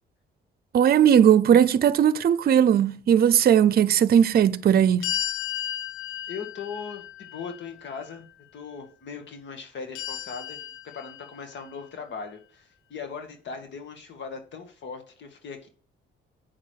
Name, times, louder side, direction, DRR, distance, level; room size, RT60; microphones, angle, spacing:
voice 1, 0.7-5.1, right 9 dB, 50° right, 0.6 m, -18 dB
sound 1, 5.0-8.2 10.0-11.7, left 11 dB, 90° left, 0.8 m, -34 dB
voice 2, 6.3-8.3 8.5-15.7, left 5 dB, 65° left, 2.0 m, -39 dB
8.7 x 6.6 x 4.5 m
cardioid pair, 90°, 20 cm